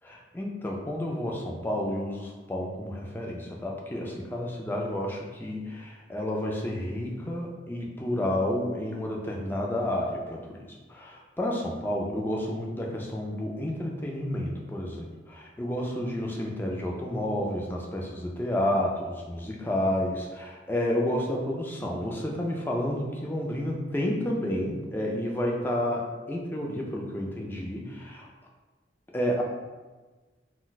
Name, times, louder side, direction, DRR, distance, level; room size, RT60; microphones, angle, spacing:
voice 1, 0.0-10.6 10.9-28.3 29.1-29.4, left 1 dB, 10° left, -1 dB, 0.3 m, -30 dB
2.3 x 2.2 x 3.9 m, 1.3 s
head